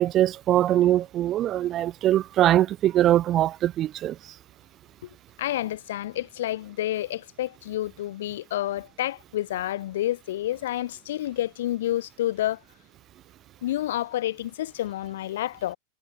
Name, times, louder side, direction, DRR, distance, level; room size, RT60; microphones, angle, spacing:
voice 1, 0.0-4.2, right 12 dB, 30° right, 0.7 m, -22 dB
voice 2, 5.4-12.6 13.6-15.8, left 13 dB, 55° left, 1.2 m, -29 dB
figure-of-eight pair, 90°, 0 cm